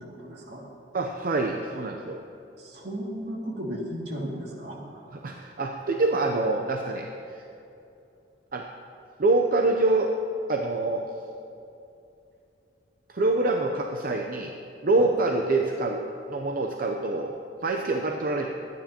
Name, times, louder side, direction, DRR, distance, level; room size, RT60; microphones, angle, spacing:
voice 1, 0.2-0.7 2.6-5.0 15.0-15.1, equal, 70° right, -3 dB, 2.3 m, -35 dB
voice 2, 0.9-2.2 5.1-7.4 8.5-8.6 9.2-10.1 10.5-11.1 13.1-14.5 14.8-16.0 16.3-17.3 17.6-18.5, right 2 dB, 55° right, 2 dB, 0.7 m, -25 dB
22.5 x 9.4 x 2.9 m, 2.8 s
head